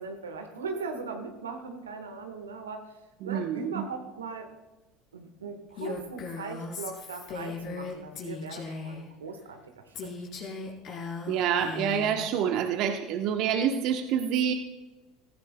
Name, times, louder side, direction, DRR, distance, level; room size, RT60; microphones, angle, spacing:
voice 1, 0.0-2.9 3.2-4.5 5.1-10.1, right 4 dB, 90° right, 5 dB, 1.3 m, -39 dB
voice 2, 3.2-3.8 11.3-14.5, right 8 dB, 60° right, 5 dB, 1.0 m, -27 dB
Female speech woman speaking, 5.8-9.1 9.9-12.2, left 4 dB, 50° left, 3.7 m, -38 dB
18.5 x 14.5 x 2.2 m, 1.1 s
hypercardioid pair, 75°, 0 cm